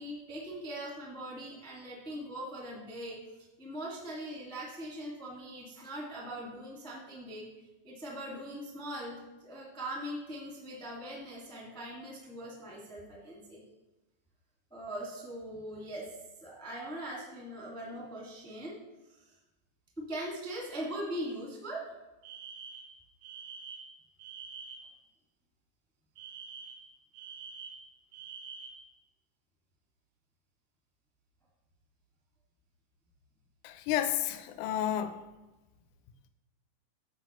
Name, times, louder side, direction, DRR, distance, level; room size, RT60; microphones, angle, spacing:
voice 1, 0.0-3.2 3.6-7.4 7.8-13.6 14.7-16.1 16.4-18.8 20.0-21.9, right 1 dB, 5° left, -4 dB, 0.4 m, -41 dB
Alarm, 22.2-25.0 26.2-28.9, right 5 dB, 85° right, 2.4 m, -46 dB
voice 2, 33.6-35.2, left 11 dB, 80° left, 10 dB, 1.9 m, -31 dB
13.5 x 4.8 x 3.0 m, 1.0 s
omnidirectional pair, 3.8 m